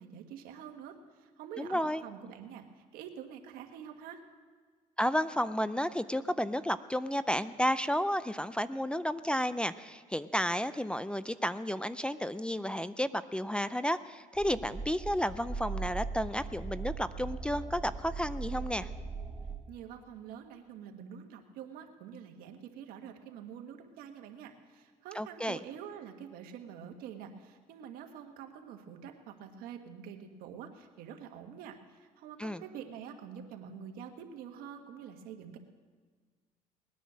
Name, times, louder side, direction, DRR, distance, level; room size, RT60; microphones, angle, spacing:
voice 1, 0.0-4.2 19.7-35.6, right 8 dB, 80° right, 5 dB, 1.6 m, -46 dB
voice 2, 1.6-2.0 5.0-18.9 25.1-25.6 32.4-32.6, equal, 5° left, 15 dB, 0.4 m, -32 dB
sound 1, 14.3-19.5, right 4 dB, 10° right, 3.5 m, -39 dB
19.5 x 10.0 x 6.3 m, 1.5 s
cardioid pair, 105°, 15 cm